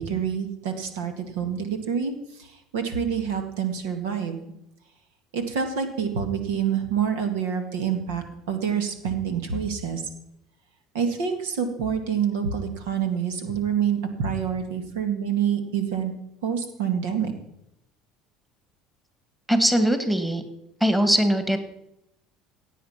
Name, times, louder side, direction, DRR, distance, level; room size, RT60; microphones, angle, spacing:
voice 1, 0.0-4.4 5.3-10.0 10.9-16.1 16.4-17.3, right 7 dB, 75° right, 6 dB, 2.1 m, -27 dB
voice 2, 19.5-20.4 20.8-21.6, right 1 dB, 5° right, 8 dB, 2.1 m, -21 dB
17.0 x 8.5 x 5.9 m, 0.82 s
hypercardioid pair, 70°, 0 cm